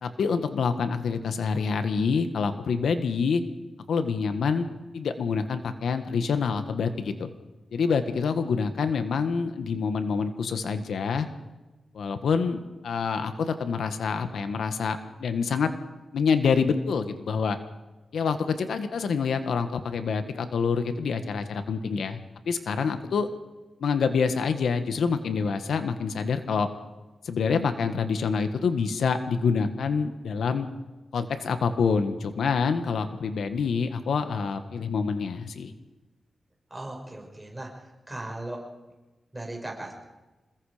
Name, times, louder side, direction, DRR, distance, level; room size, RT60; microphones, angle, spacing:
voice 1, 0.0-3.4 3.9-4.7 4.9-7.3 7.7-11.3 11.9-15.7 16.1-17.6 18.1-22.2 22.4-23.3 23.8-26.7 27.2-30.7 31.1-35.7, left 5 dB, 85° left, 8 dB, 1.6 m, -26 dB
voice 2, 36.7-37.7 38.1-38.6 39.3-39.9, right 1 dB, 10° right, 0 dB, 6.3 m, -37 dB
27.5 x 21.0 x 5.1 m, 1.1 s
wide cardioid pair, 125°, 0 cm